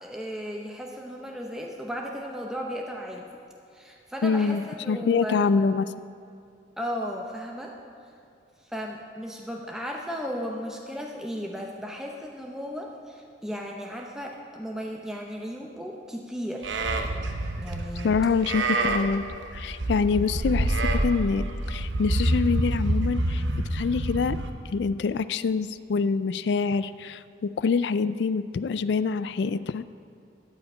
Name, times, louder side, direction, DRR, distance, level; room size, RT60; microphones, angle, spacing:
voice 1, 0.0-3.3 3.7-5.5 6.8-7.7 8.7-16.8 17.6-18.1, equal, 5° right, 0 dB, 0.7 m, -35 dB
voice 2, 4.2-5.9 18.0-19.2 19.5-23.4 23.7-24.4 24.7-29.8, left 5 dB, 70° left, 15 dB, 0.3 m, -25 dB
Livestock farm animals working animals, 16.6-24.5, right 1 dB, 85° right, 0.9 m, -27 dB
13.0 x 5.7 x 8.9 m, 2.6 s
head